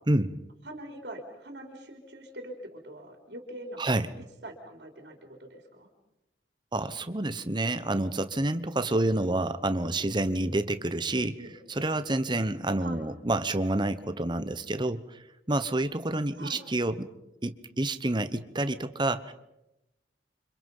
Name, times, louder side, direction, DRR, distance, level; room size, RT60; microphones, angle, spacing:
voice 1, 0.6-4.1 4.4-5.9 11.4-11.5 12.8-13.0 16.4-16.6, right 1 dB, 65° right, 2 dB, 3.7 m, -43 dB
voice 2, 3.8-4.1 6.7-11.4 11.7-15.2 15.5-17.1 17.4-19.3, right 2 dB, 25° right, 11 dB, 1.0 m, -28 dB
29.5 x 26.0 x 5.5 m, 0.93 s
head